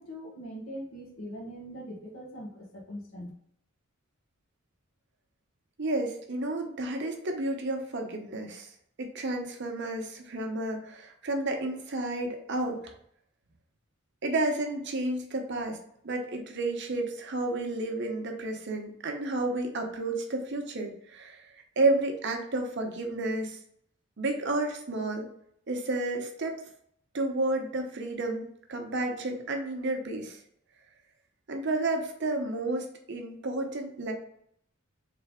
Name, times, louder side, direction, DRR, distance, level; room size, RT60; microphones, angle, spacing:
voice 1, 0.0-3.3, equal, 75° left, -2 dB, 1.2 m, -41 dB
voice 2, 5.8-8.7 9.0-12.9 14.2-15.8 16.0-21.5 21.8-23.6 24.2-25.3 25.7-26.6 27.1-30.4 31.5-34.1, right 2 dB, 55° right, 3 dB, 0.8 m, -31 dB
3.7 x 3.3 x 3.6 m, 0.69 s
head